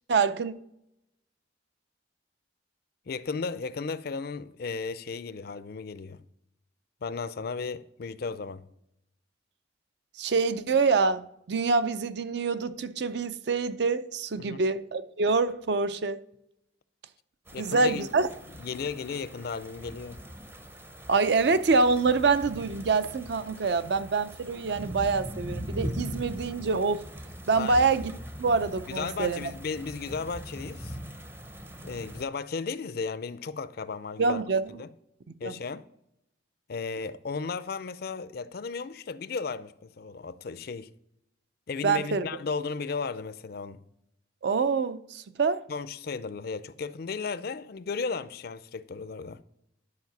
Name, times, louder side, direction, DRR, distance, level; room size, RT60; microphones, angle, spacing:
voice 1, 0.1-0.5 10.2-16.2 17.6-18.3 21.1-27.0 27.5-28.1 28.4-29.5 34.2-34.8 35.4-35.6 41.8-42.2 44.4-45.6, right 4 dB, 60° right, 0.5 m, -26 dB
voice 2, 3.1-6.2 7.0-8.6 14.4-14.6 17.5-18.1 18.6-20.2 27.6-27.8 28.9-31.0 31.8-34.4 34.8-34.9 35.4-35.9 36.7-40.9 41.7-43.8 45.7-49.4, left 4 dB, 55° left, 0.4 m, -35 dB
sound 1, 17.5-32.2, equal, 10° right, 0.6 m, -41 dB
10.5 x 4.8 x 5.9 m
head